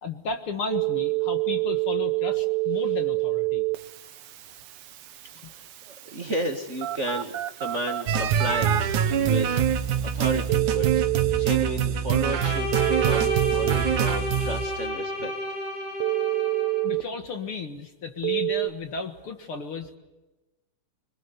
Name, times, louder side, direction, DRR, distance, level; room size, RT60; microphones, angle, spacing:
voice 1, 0.0-3.7 5.3-5.5 16.8-20.0, left 4 dB, 50° left, 7 dB, 2.2 m, -34 dB
Telephone, 0.7-11.5 12.7-13.7 16.0-17.0 18.2-18.7, right 22 dB, 65° right, 2.1 m, -28 dB
voice 2, 5.5-11.0 11.3-12.7 13.0-15.3, right 1 dB, 30° right, 4 dB, 1.7 m, -33 dB
sound 1, 8.1-14.7, right 8 dB, 85° right, 2.8 m, -24 dB
Bowed string instrument, 12.2-16.9, left 1 dB, 80° left, 5.7 m, -32 dB
26.0 x 21.0 x 8.0 m, 1.1 s
omnidirectional pair, 3.4 m